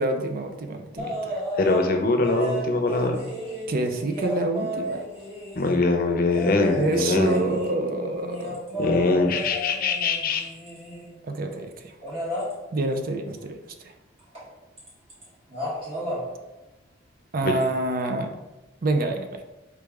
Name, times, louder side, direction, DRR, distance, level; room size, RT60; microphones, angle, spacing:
voice 1, 0.0-1.4 3.7-5.0 6.7-8.6 11.2-11.9 12.7-13.9 17.3-18.3 18.8-19.4, right 2 dB, 45° right, 5 dB, 0.5 m, -27 dB
sound 1, 1.0-1.9 2.2-5.8 6.3-11.1 12.0-12.5 14.3-14.5 14.8-15.2 15.5-16.2 17.6-17.7, equal, 30° right, 1.5 m, -33 dB
voice 2, 1.6-3.2 5.6-7.4 8.8-10.5 17.4-17.5, left 3 dB, 50° left, 4 dB, 0.6 m, -22 dB
4.7 x 3.2 x 3.5 m, 1.0 s
head